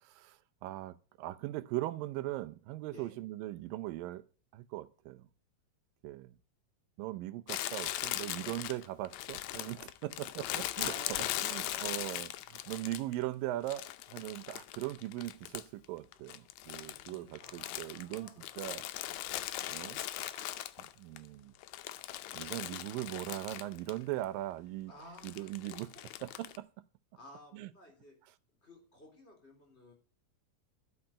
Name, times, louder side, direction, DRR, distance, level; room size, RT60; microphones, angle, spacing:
voice 1, 0.0-4.2 4.5-5.3 6.0-6.3 7.0-18.3 18.6-18.9 19.7-20.0 20.3-21.5 22.3-25.9 26.2-26.7 27.5-27.7, right 16 dB, 90° right, 2.5 m, -40 dB
Crumpling crinkling, 7.5-13.2 13.7-15.9 16.1-21.2 21.6-24.0 24.2-24.3 25.2-26.6, left 14 dB, 75° left, 1.7 m, -39 dB
voice 2, 10.8-12.1 16.8-18.4 24.9-25.8 27.2-28.1 28.6-29.9, equal, 20° left, 3.3 m, -54 dB
12.0 x 5.8 x 8.8 m
omnidirectional pair, 3.9 m